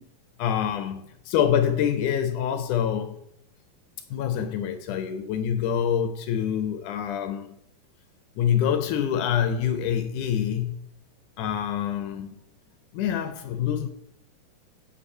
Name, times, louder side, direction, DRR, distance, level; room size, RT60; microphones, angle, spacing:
voice 1, 0.4-3.2 4.1-7.6 8.4-10.8 11.4-12.4 12.9-13.9, left 9 dB, 75° left, 2.0 m, -26 dB
8.5 x 5.3 x 5.5 m
omnidirectional pair, 4.0 m